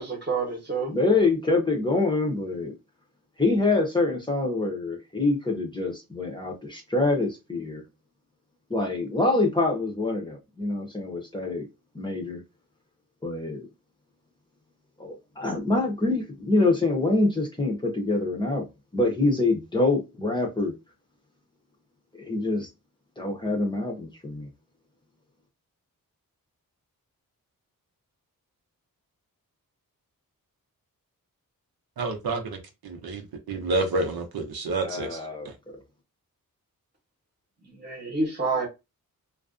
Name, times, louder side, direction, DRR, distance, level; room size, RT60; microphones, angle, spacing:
voice 1, 0.0-1.0 37.6-38.7, right 3 dB, 30° right, 0.9 m, -28 dB
voice 2, 0.9-2.7 3.4-7.8 8.7-11.7 11.9-12.4 13.2-13.7 15.0-18.6 18.9-20.7 22.2-22.7 23.2-24.5 34.8-35.5, left 2 dB, 15° left, 0.6 m, -25 dB
voice 3, 32.0-35.5, right 2 dB, 80° right, 0.6 m, -29 dB
2.4 x 2.2 x 2.4 m
wide cardioid pair, 135°, 36 cm